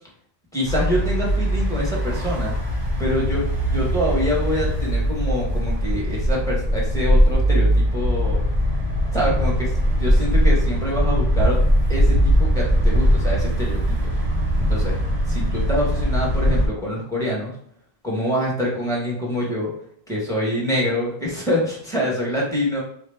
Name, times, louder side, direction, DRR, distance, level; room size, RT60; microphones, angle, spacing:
voice 1, 0.5-2.5 3.0-8.4 9.1-11.6 11.9-14.0 14.6-15.0 15.3-17.5 18.0-19.7 20.1-22.8, equal, 5° left, -5 dB, 1.3 m, -25 dB
sound 1, 0.6-16.7, equal, 40° right, 0.9 m, -20 dB
4.8 x 2.1 x 3.4 m, 0.63 s
omnidirectional pair, 1.1 m